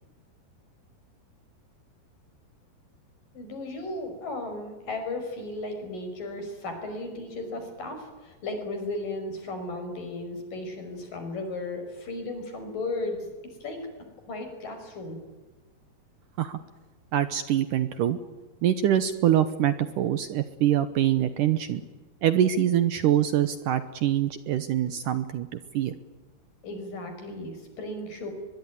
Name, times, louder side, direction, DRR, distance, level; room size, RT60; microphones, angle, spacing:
voice 1, 3.3-13.3 13.6-13.8 14.3-15.2 26.6-28.3, left 2 dB, 55° left, 6 dB, 7.1 m, -35 dB
voice 2, 17.1-18.2 18.6-21.8 22.2-25.9, right 11 dB, 70° right, 12 dB, 2.1 m, -24 dB
22.5 x 22.5 x 9.7 m, 1.2 s
omnidirectional pair, 4.7 m